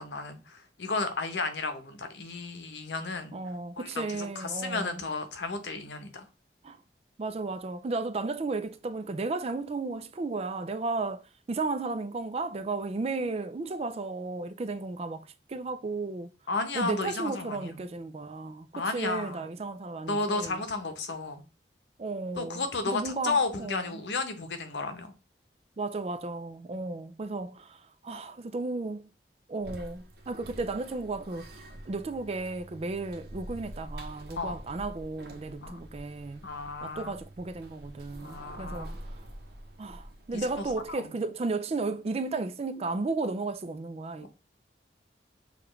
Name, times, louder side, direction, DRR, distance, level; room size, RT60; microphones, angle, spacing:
voice 1, 0.0-3.4 3.8-6.3 16.5-17.8 18.7-19.4 20.1-21.4 22.4-25.1 34.4-34.6 35.6-35.8 36.4-37.1 38.2-38.9 40.3-41.1 44.2-44.3, left 3 dB, 85° left, 0.9 m, -33 dB
voice 2, 3.3-5.0 6.6-6.8 7.2-11.2 11.5-16.3 16.7-20.6 22.0-24.0 25.8-29.1 29.5-31.5 31.9-36.5 36.8-39.0 39.8-44.3, right 3 dB, 35° right, 0.4 m, -34 dB
sound 1, 29.6-41.0, right 1 dB, 60° right, 0.9 m, -46 dB
6.7 x 2.5 x 3.1 m
head